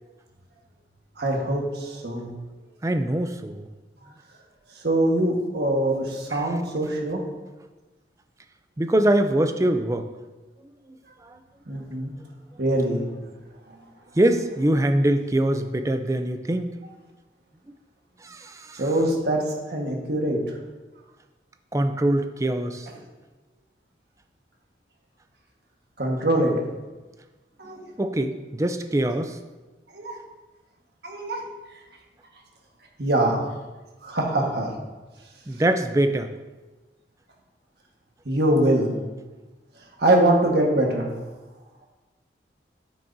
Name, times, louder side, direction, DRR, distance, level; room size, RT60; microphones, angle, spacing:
voice 1, 1.2-2.3 4.7-7.2 11.7-12.1 12.6-13.0 18.7-20.4 26.0-26.6 27.6-27.9 29.9-30.2 31.0-31.4 33.0-33.4 34.0-34.7 38.2-38.9 40.0-41.1, right 1 dB, 65° right, 0 dB, 1.5 m, -23 dB
voice 2, 2.8-3.7 6.3-6.4 8.8-10.1 11.2-11.4 14.2-16.7 18.2-18.8 21.7-22.9 28.0-29.4 35.5-36.3, right 1 dB, 15° right, 8 dB, 0.4 m, -23 dB
8.7 x 8.4 x 2.7 m, 1.2 s
head